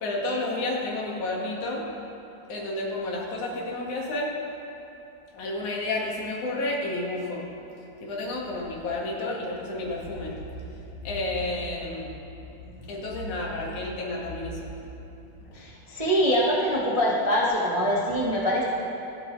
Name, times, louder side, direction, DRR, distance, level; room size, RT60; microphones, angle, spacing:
voice 1, 0.0-1.8 2.5-4.3 5.3-7.4 8.0-12.1 12.9-14.9 15.5-15.6, left 2 dB, 75° left, -3 dB, 3.4 m, -31 dB
voice 2, 15.5-18.6, equal, 45° right, -5 dB, 0.4 m, -24 dB
26.5 x 9.3 x 3.3 m, 2.9 s
omnidirectional pair, 3.5 m